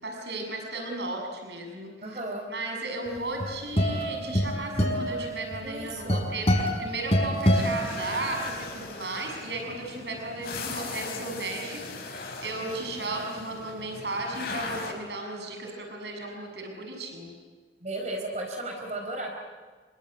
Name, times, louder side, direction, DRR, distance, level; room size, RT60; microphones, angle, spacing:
voice 1, 0.0-1.9 2.5-17.3, right 2 dB, 75° right, 2 dB, 6.9 m, -35 dB
voice 2, 2.0-2.5 5.6-6.2 17.8-19.3, right 2 dB, 40° right, 1 dB, 4.4 m, -34 dB
sound 1, 3.2-8.6, equal, 35° left, 5.7 m, -26 dB
sound 2, 7.4-14.9, left 3 dB, 60° left, 5.6 m, -39 dB
27.5 x 23.5 x 9.2 m, 1.5 s
head